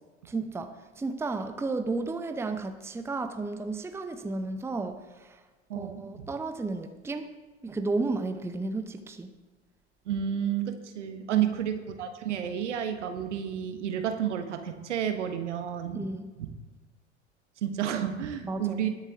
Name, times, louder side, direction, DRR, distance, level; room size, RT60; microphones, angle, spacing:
voice 1, 0.2-5.4 5.7-7.3 7.6-9.3 11.3-11.5 15.9-16.3 18.5-18.8, right 3 dB, 5° right, 8 dB, 0.8 m, -33 dB
voice 2, 5.7-6.3 10.1-16.1 16.4-16.5 17.6-18.9, right 9 dB, 70° right, 7 dB, 1.5 m, -31 dB
20.0 x 7.4 x 3.7 m, 1.3 s
figure-of-eight pair, 75°, 37 cm